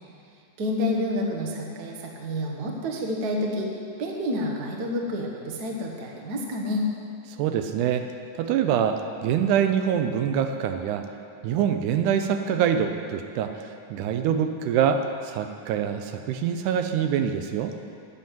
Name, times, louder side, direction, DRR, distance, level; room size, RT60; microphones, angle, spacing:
voice 1, 0.6-3.7 4.0-6.9, left 1 dB, 50° right, 0 dB, 1.1 m, -29 dB
voice 2, 7.4-8.1 8.4-11.1 11.4-17.7, right 8 dB, 80° right, 7 dB, 2.0 m, -25 dB
9.5 x 7.1 x 9.2 m, 2.6 s
omnidirectional pair, 3.7 m